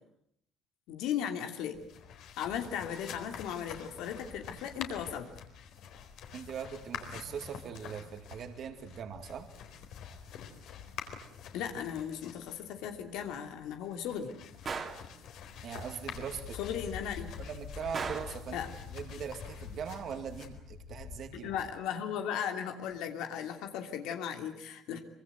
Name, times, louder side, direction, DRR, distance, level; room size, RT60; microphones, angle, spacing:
voice 1, 0.9-1.8 2.4-5.3 11.5-14.3 16.6-17.3 18.5-18.7 21.3-25.0, left 9 dB, 85° left, 5 dB, 2.9 m, -36 dB
sound 1, 1.7-21.7, left 7 dB, 65° left, 4.2 m, -46 dB
voice 2, 6.3-9.5 15.6-16.6 17.4-18.6 18.9-21.6 24.9-25.0, right 7 dB, 45° right, 7 dB, 2.3 m, -41 dB
Gunshot gunfire, 14.7-15.1 17.9-18.4, right 5 dB, 30° right, 2.7 m, -36 dB
25.0 x 24.0 x 8.1 m, 0.72 s
cardioid pair, 160°, 0 cm